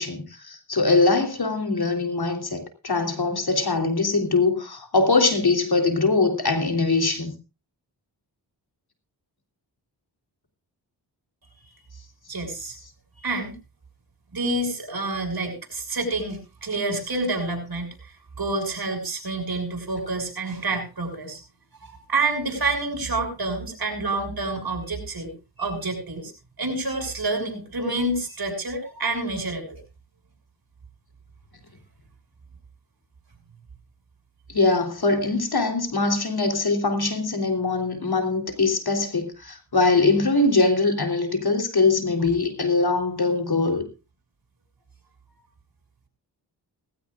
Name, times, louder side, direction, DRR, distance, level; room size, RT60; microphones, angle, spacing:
voice 1, 0.0-7.3 34.5-43.9, left 3 dB, 60° left, 3.6 m, -22 dB
voice 2, 12.3-12.8 13.2-13.6 14.3-21.4 21.8-26.3 26.6-29.8, right 2 dB, 55° right, 6.8 m, -28 dB
18.5 x 16.5 x 2.5 m
cardioid pair, 50°, 43 cm